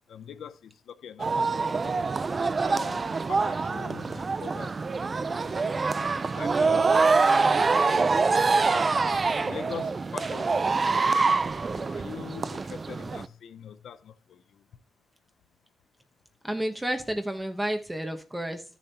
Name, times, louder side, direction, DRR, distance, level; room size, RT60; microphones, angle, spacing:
voice 1, 0.1-2.1 2.6-4.7 5.0-5.8 6.4-8.8 9.4-11.3 11.5-14.6, left 8 dB, 75° left, 0.6 m, -43 dB
sound 1, 1.2-13.3, right 4 dB, 30° right, 0.3 m, -25 dB
voice 2, 16.4-18.6, right 1 dB, 10° right, 1.0 m, -31 dB
13.5 x 6.9 x 2.8 m
wide cardioid pair, 165°, 0 cm